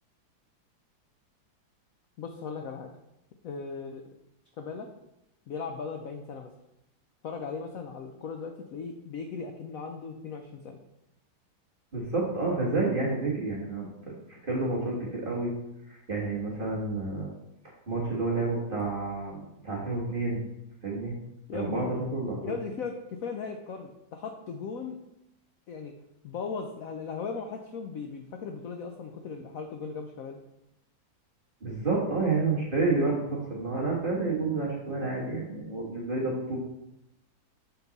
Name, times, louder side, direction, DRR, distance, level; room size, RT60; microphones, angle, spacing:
voice 1, 2.2-2.9 3.4-4.0 4.6-4.9 5.5-6.5 7.2-10.8 21.5-21.8 22.4-25.0 25.7-25.9 26.2-30.4, left 5 dB, 90° left, 4 dB, 0.7 m, -37 dB
voice 2, 11.9-15.5 15.9-17.3 17.9-20.4 20.8-21.1 21.5-22.5 31.6-36.6, right 3 dB, 30° right, -4 dB, 1.4 m, -29 dB
6.9 x 5.4 x 4.0 m, 0.87 s
omnidirectional pair, 2.2 m